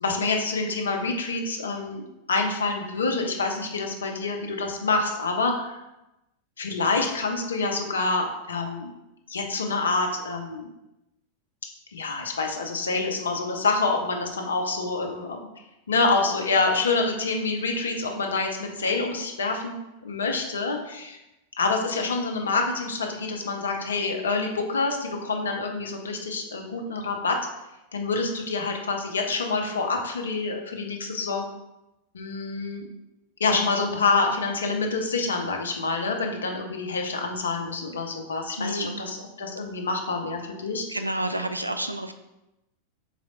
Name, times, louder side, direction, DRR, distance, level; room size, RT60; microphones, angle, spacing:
voice 1, 0.0-2.0 2.3-5.7 6.6-8.9 9.3-10.7 11.9-15.4 15.9-19.7 20.0-21.2 21.6-27.4 27.9-31.5 32.1-32.9 33.4-40.9, left 3 dB, 70° left, 3 dB, 0.7 m, -27 dB
voice 2, 38.6-39.0 40.9-42.1, right 1 dB, 85° right, 8 dB, 0.4 m, -29 dB
4.0 x 3.2 x 3.8 m, 0.94 s
figure-of-eight pair, 90°, 0 cm